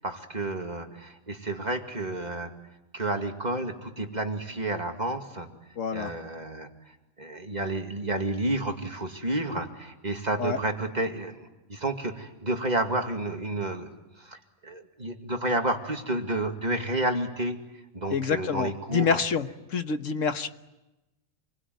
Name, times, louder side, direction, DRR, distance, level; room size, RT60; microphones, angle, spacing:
voice 1, 0.0-2.5 2.9-5.5 5.9-6.7 7.2-17.6 17.9-19.2, right 2 dB, 30° right, 4 dB, 2.5 m, -30 dB
voice 2, 5.8-6.1 10.4-10.6 18.1-20.5, left 6 dB, 70° left, 9 dB, 1.6 m, -27 dB
28.0 x 21.5 x 9.5 m, 1.0 s
omnidirectional pair, 1.4 m